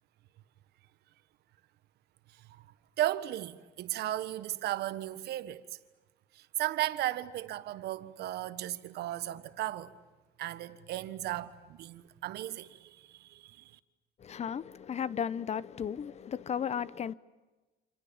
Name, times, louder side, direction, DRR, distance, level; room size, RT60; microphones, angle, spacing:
voice 1, 2.3-2.6 3.0-5.8 6.3-9.9 10.4-13.8, right 14 dB, 75° right, 1.5 m, -35 dB
voice 2, 14.2-17.1, left 8 dB, 40° left, 0.9 m, -35 dB
29.0 x 27.5 x 7.2 m
cardioid pair, 110°, 17 cm